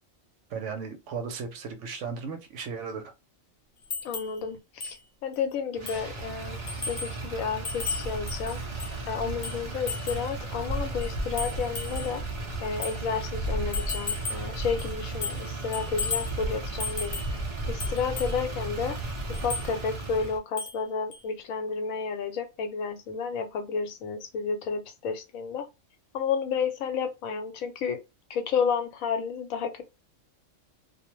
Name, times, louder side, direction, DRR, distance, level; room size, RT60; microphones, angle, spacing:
voice 1, 0.5-3.1, right 5 dB, 70° right, 0.9 m, -36 dB
sound 1, 3.9-4.4 4.8-5.0 5.3-5.4 5.9-6.1 6.7-7.2 7.6-9.0 9.4-10.3 11.0-12.2 12.8-13.0 13.7-14.5 14.8-15.5 15.7-16.3 16.8-17.4 17.8-18.4 19.3-19.7 20.6-20.8 21.1-21.2, left 4 dB, 45° left, 0.7 m, -35 dB
voice 2, 4.0-5.0 5.2-8.6 9.1-12.2 12.6-17.2 17.7-19.0 19.4-25.6 26.1-28.0 28.3-29.8, left 6 dB, 80° left, 1.1 m, -31 dB
Motor vehicle (road), 5.7-20.4, right 2 dB, 55° right, 0.3 m, -34 dB
2.4 x 2.0 x 2.9 m
omnidirectional pair, 1.4 m